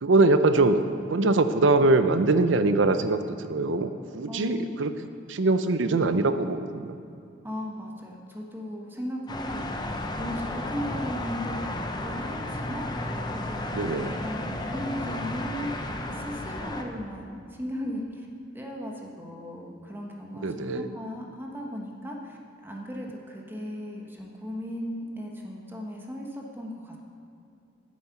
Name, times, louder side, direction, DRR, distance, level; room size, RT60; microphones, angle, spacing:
voice 1, 0.0-0.8 1.1-4.9 5.3-7.0 13.7-14.2 20.4-20.9, right 2 dB, 80° right, 10 dB, 0.6 m, -23 dB
voice 2, 4.3-4.7 7.4-13.7 14.1-18.3 18.5-27.1, equal, 10° right, -1 dB, 1.2 m, -37 dB
sound 1, 9.3-16.8, left 1 dB, 25° left, 0.8 m, -33 dB
9.7 x 8.5 x 5.9 m, 2.6 s
head